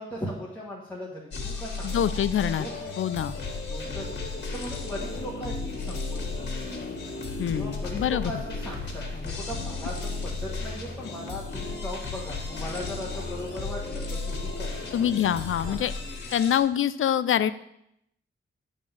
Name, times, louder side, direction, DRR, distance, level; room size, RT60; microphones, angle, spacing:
voice 1, 0.0-2.0 2.5-2.9 3.7-6.7 7.5-14.8 15.6-16.4, equal, 5° left, -6 dB, 1.5 m, -38 dB
sound 1, 1.3-16.6, left 3 dB, 55° left, 1.6 m, -34 dB
voice 2, 1.8-2.7 3.0-3.3 7.4-8.3 14.9-15.9 16.3-17.5, left 10 dB, 75° left, 14 dB, 0.5 m, -25 dB
9.7 x 3.7 x 7.2 m, 0.77 s
wide cardioid pair, 175°, 21 cm